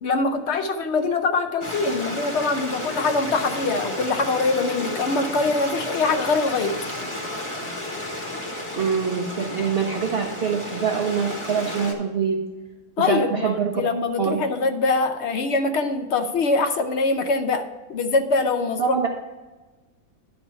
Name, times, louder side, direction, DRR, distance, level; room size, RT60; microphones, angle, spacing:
voice 1, 0.0-6.8 13.0-18.9, left 3 dB, 60° left, 8 dB, 0.7 m, -23 dB
Stream, 1.6-11.9, left 1 dB, 20° left, 1.1 m, -32 dB
voice 2, 8.8-12.4 13.0-13.7 14.2-14.4 18.8-19.1, right 6 dB, 55° right, 1 dB, 0.7 m, -24 dB
10.0 x 4.4 x 5.5 m, 1.2 s
omnidirectional pair, 1.6 m